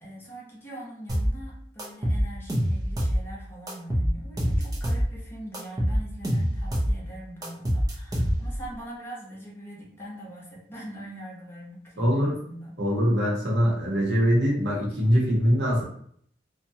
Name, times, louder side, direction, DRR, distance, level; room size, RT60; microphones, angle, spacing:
voice 1, 0.0-12.7, right 1 dB, 15° left, -6 dB, 0.8 m, -42 dB
sound 1, 1.1-1.3 1.8-3.2 3.7-5.1 5.5-7.0 7.4-8.6, equal, 20° right, 0.5 m, -25 dB
voice 2, 12.0-12.3 12.8-15.8, equal, 80° right, -3 dB, 0.9 m, -23 dB
2.6 x 2.2 x 2.7 m, 0.65 s
head